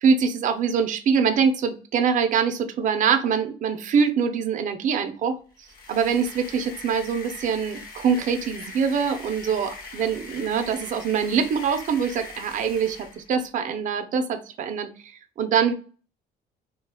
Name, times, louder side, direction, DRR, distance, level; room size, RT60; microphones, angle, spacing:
voice 1, 0.0-5.4 5.9-15.7, right 6 dB, 50° right, 7 dB, 0.5 m, -24 dB
sound 1, 5.5-13.3, left 3 dB, 60° left, 0.8 m, -42 dB
3.1 x 2.2 x 3.4 m, 0.38 s
cardioid pair, 110°, 17 cm